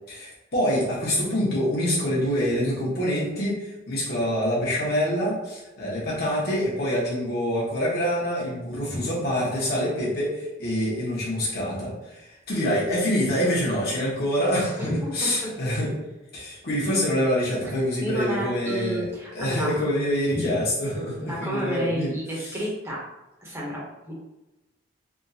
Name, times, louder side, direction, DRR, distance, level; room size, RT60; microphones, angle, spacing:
voice 1, 0.1-15.9 16.3-19.0 19.3-22.6, equal, 50° left, -6 dB, 1.3 m, -26 dB
voice 2, 14.8-15.5 18.0-19.7 20.3-20.6 21.3-23.0 23.4-24.1, equal, 15° right, -5 dB, 0.9 m, -31 dB
3.6 x 2.5 x 2.7 m, 1.0 s
head